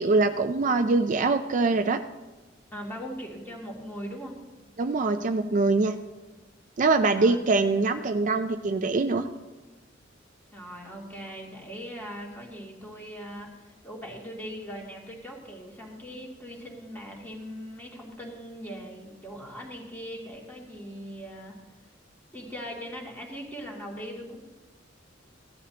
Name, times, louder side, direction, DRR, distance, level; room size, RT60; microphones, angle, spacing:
voice 1, 0.0-2.0 4.8-5.9 6.8-9.3, right 3 dB, 45° right, 8 dB, 0.4 m, -23 dB
voice 2, 2.7-4.4 7.1-7.4 10.5-21.6 22.3-24.4, equal, 10° left, -3 dB, 2.6 m, -40 dB
16.0 x 11.0 x 2.9 m, 1.2 s
head